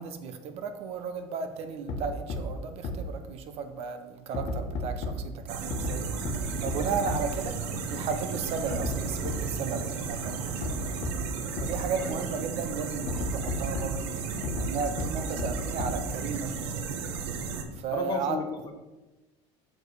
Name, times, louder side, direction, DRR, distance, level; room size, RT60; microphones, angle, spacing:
voice 1, 0.0-6.1 6.6-7.6 7.9-11.1 11.6-14.2 14.6-16.9 17.7-18.4, right 5 dB, 45° right, 8 dB, 0.7 m, -34 dB
sound 1, 1.9-2.0 2.3-2.4 2.8-2.9 4.3-5.1 5.7-5.9 6.3-6.4 6.7-6.8 7.1-7.2 8.7-8.9 9.3-9.4 10.6-10.7 11.0-11.1 11.6-11.7 13.1-13.9 14.4-14.7 15.0-15.1 15.4-15.5 15.8-15.9, left 4 dB, 50° left, 1.3 m, -31 dB
sound 2, 5.5-17.6, right 5 dB, 80° right, 1.0 m, -34 dB
sound 3, 6.2-11.1, right 2 dB, 15° right, 2.3 m, -42 dB
voice 2, 17.9-18.7, left 5 dB, 30° left, 5 dB, 0.8 m, -33 dB
6.5 x 5.0 x 4.8 m, 1.1 s
cardioid pair, 155°, 14 cm